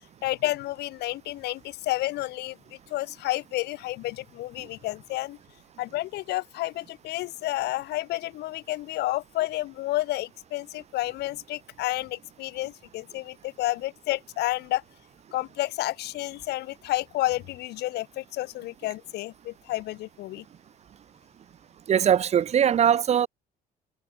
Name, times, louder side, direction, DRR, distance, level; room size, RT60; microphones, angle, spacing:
voice 1, 0.2-5.4 5.8-14.8 15.3-20.4, left 17 dB, 75° left, 1.2 m, -30 dB
voice 2, 21.9-23.3, right 9 dB, 40° right, 0.6 m, -21 dB
cardioid pair, 110°, 17 cm